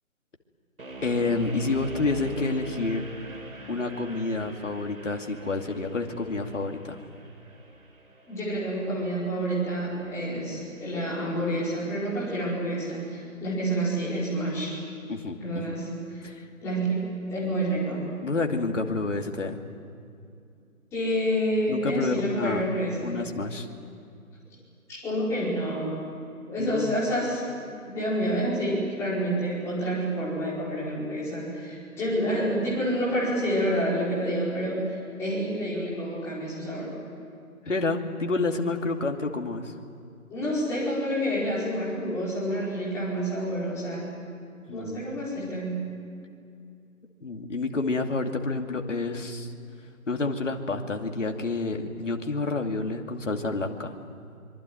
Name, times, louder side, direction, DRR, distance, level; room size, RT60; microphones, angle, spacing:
sound 1, 0.8-11.8, right 2 dB, 70° right, 4.3 m, -44 dB
voice 1, 1.0-3.0 3.7-7.0 15.1-15.7 16.2-16.4 18.2-19.6 21.7-22.6 23.0-23.7 26.6-26.9 37.7-39.7 44.7-45.0 47.2-49.5 50.1-53.9, left 3 dB, 55° left, 4 dB, 2.7 m, -29 dB
voice 2, 8.3-14.8 15.4-16.2 16.6-18.1 20.9-23.2 24.9-26.0 26.5-36.9 40.3-44.1 44.7-45.8, equal, 5° left, -8 dB, 5.1 m, -28 dB
25.0 x 24.0 x 9.3 m, 2.5 s
figure-of-eight pair, 160°, 43 cm